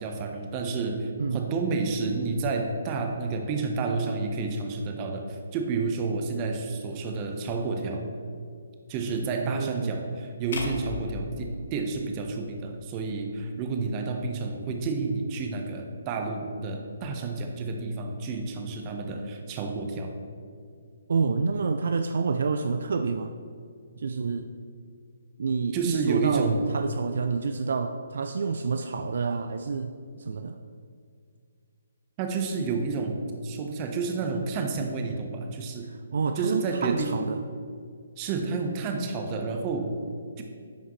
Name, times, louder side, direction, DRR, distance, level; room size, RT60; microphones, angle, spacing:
voice 1, 0.0-8.0 8.9-20.1 25.7-26.6 32.2-35.9 36.4-37.2 38.2-39.9 40.4-40.5, right 4 dB, 30° right, 3 dB, 0.9 m, -30 dB
voice 2, 9.4-10.0 21.1-23.3 24.0-24.5 25.4-29.9 30.2-30.6 35.8-37.4, right 4 dB, 65° right, 7 dB, 0.4 m, -28 dB
sound 1, 10.5-12.8, left 3 dB, 55° left, 1.0 m, -37 dB
10.0 x 5.7 x 3.1 m, 2.2 s
figure-of-eight pair, 140°, 0 cm